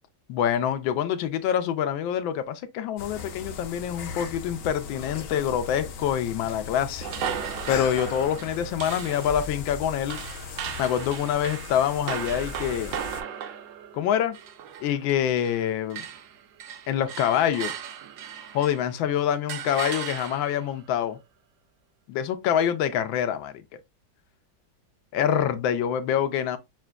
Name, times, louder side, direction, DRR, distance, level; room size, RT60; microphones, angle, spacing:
voice 1, 0.3-7.1 7.7-10.2 10.8-13.0 13.9-14.4 14.8-16.0 16.9-17.7 18.5-21.2 22.1-23.6 25.1-26.6, left 9 dB, 85° left, 1.3 m, -26 dB
sound 1, 3.0-13.2, left 5 dB, 65° left, 0.8 m, -38 dB
sound 2, 7.0-15.6 15.9-19.0 19.5-20.7, right 8 dB, 75° right, 1.3 m, -37 dB
6.1 x 2.5 x 2.2 m
omnidirectional pair, 2.1 m